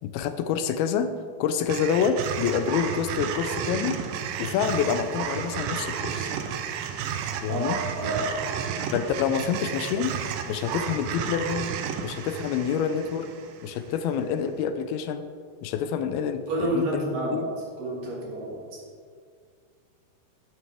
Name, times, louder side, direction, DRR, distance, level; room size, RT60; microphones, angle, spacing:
voice 1, 0.0-1.1 1.4-4.0 4.4-6.3 7.4-7.8 8.9-10.1 10.5-11.7 12.0-13.3 13.6-15.2 15.6-17.1 17.3-17.5, left 7 dB, 85° left, 10 dB, 2.4 m, -27 dB
sound 1, 1.7-14.0, right 8 dB, 85° right, 1.9 m, -32 dB
voice 2, 7.9-8.5 16.5-17.5 17.8-18.8, right 1 dB, 65° right, -3 dB, 3.2 m, -29 dB
9.4 x 9.3 x 3.4 m, 2.1 s
omnidirectional pair, 4.4 m